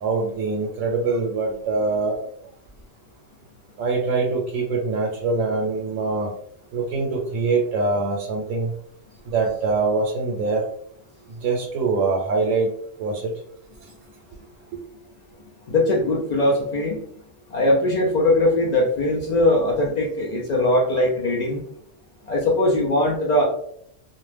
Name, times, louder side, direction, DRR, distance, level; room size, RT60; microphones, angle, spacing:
voice 1, 0.0-2.2 3.8-6.3 6.7-8.7 9.3-10.7 11.4-12.7 13.0-13.3, right 3 dB, 85° right, -1 dB, 0.9 m, -23 dB
voice 2, 15.3-17.0 17.5-21.6 22.3-23.5, left 1 dB, 80° left, -3 dB, 0.3 m, -21 dB
2.5 x 2.1 x 3.2 m, 0.69 s
omnidirectional pair, 1.3 m